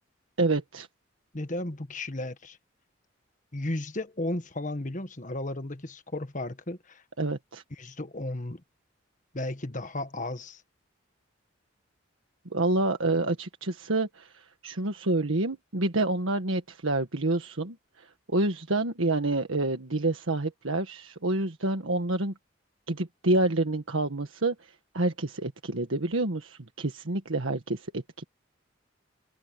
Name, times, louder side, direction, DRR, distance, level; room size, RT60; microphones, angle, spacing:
voice 1, 0.4-0.9 7.2-7.6 12.5-22.3 22.9-28.3, right 2 dB, 85° right, 1.6 m, -28 dB
voice 2, 1.3-2.6 3.5-7.0 7.7-8.6 9.3-10.6, left 1 dB, 40° left, 1.5 m, -34 dB
head